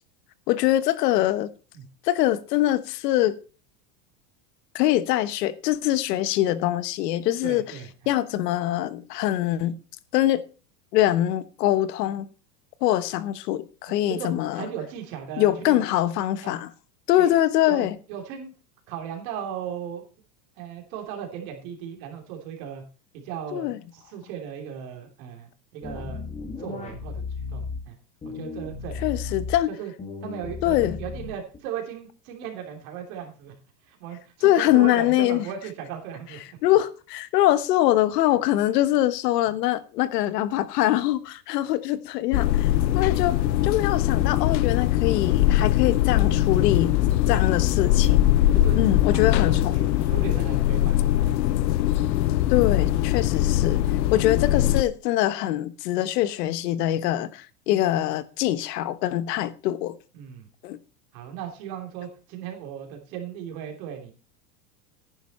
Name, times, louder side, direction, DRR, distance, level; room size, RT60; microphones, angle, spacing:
voice 1, 0.5-1.5 2.0-3.4 4.7-7.6 8.1-9.7 10.1-10.4 10.9-12.3 12.8-14.6 15.4-16.7 17.1-17.9 23.5-23.8 29.0-29.7 30.6-31.0 34.4-35.4 36.6-43.4 43.6-46.9 47.3-48.3 48.7-49.9 52.5-53.8 54.1-60.0 60.6-60.8, left 14 dB, 70° left, 1.2 m, -23 dB
voice 2, 7.4-7.9 14.1-15.8 16.4-16.5 17.2-17.3 17.7-18.5 18.9-20.0 20.6-22.8 23.1-23.6 23.9-26.2 26.6-27.2 27.5-28.0 28.2-29.3 29.7-29.9 30.2-33.5 33.8-36.4 47.2-47.5 48.2-48.8 49.1-49.2 49.5-51.4 53.2-53.3 53.9-54.1 60.1-60.5 61.1-64.1, right 9 dB, 55° right, 3.3 m, -37 dB
sound 1, 25.8-27.8 28.2-29.6 30.0-31.6, left 4 dB, 15° left, 2.1 m, -35 dB
sound 2, 42.3-54.8, left 13 dB, 85° left, 0.8 m, -21 dB
10.5 x 10.0 x 4.3 m
supercardioid pair, 155°, 49 cm